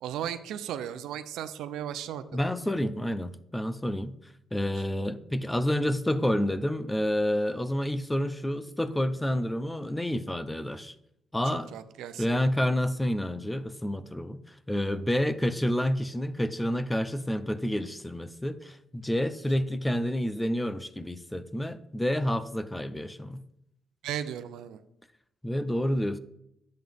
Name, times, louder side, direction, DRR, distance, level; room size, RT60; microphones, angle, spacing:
voice 1, 0.0-2.2 11.4-12.2 24.0-24.8, right 10 dB, 85° right, 11 dB, 0.6 m, -36 dB
voice 2, 2.3-4.2 4.5-10.9 11.3-11.7 12.2-23.4 25.4-26.2, left 1 dB, 10° left, 13 dB, 0.6 m, -29 dB
10.5 x 7.8 x 3.5 m, 0.79 s
cardioid pair, 90°, 0 cm